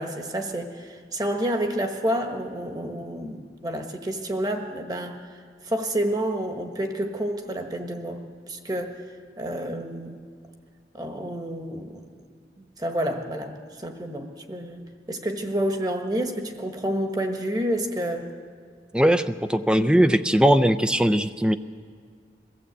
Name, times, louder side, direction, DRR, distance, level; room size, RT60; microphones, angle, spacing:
voice 1, 0.0-5.2 5.6-9.0 9.4-10.2 10.9-12.0 12.6-18.3, right 1 dB, 20° right, 5 dB, 1.4 m, -29 dB
voice 2, 18.9-21.6, equal, 5° right, 11 dB, 0.4 m, -20 dB
22.0 x 15.0 x 8.2 m, 2.1 s
head